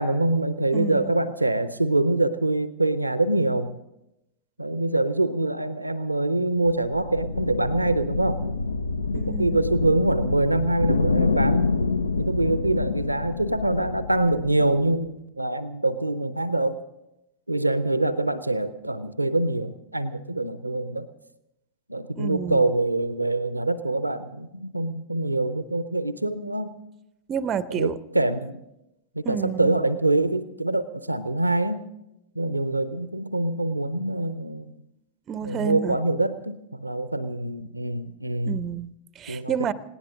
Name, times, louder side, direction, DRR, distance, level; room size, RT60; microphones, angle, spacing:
voice 1, 0.0-3.7 4.6-8.4 9.1-11.7 12.2-16.8 17.5-21.1 21.9-26.8 27.7-28.6 29.2-31.8 32.4-34.7 35.4-38.6 39.3-39.7, right 2 dB, 85° right, 14 dB, 0.6 m, -25 dB
voice 2, 0.7-1.1 9.1-9.6 22.2-22.6 27.3-28.0 29.2-29.8 35.3-36.0 38.4-39.7, right 7 dB, 30° right, 16 dB, 0.5 m, -30 dB
sound 1, 6.6-15.1, left 3 dB, 75° left, 0.5 m, -27 dB
18.5 x 18.0 x 3.8 m, 0.90 s
figure-of-eight pair, 90°, 0 cm